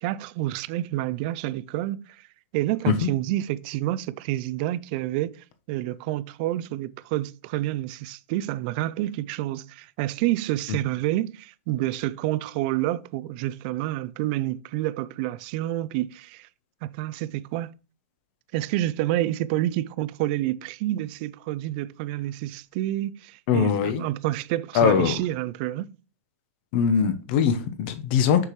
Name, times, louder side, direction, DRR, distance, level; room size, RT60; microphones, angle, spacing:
voice 1, 0.0-2.3 2.5-16.5 16.8-17.7 18.5-25.9, right 15 dB, 35° right, 0.3 m, -28 dB
voice 2, 23.5-24.0 24.7-25.2 26.7-28.4, left 7 dB, 40° left, 0.9 m, -21 dB
6.4 x 5.9 x 3.1 m
supercardioid pair, 155°, 8 cm